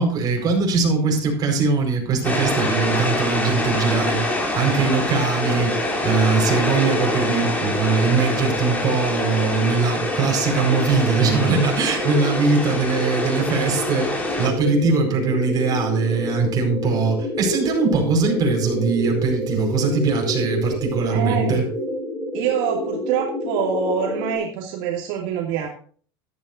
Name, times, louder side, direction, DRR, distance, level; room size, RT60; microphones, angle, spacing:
voice 1, 0.0-21.6, right 4 dB, 30° right, 1 dB, 4.8 m, -21 dB
sound 1, 2.2-14.5, left 1 dB, 10° left, 3.2 m, -25 dB
sound 2, 5.4-24.4, left 1 dB, 30° left, 4.7 m, -29 dB
voice 2, 21.1-21.7 22.3-25.7, right 7 dB, 60° right, 0 dB, 2.6 m, -25 dB
14.0 x 12.5 x 2.7 m, 0.43 s
supercardioid pair, 145°, 13 cm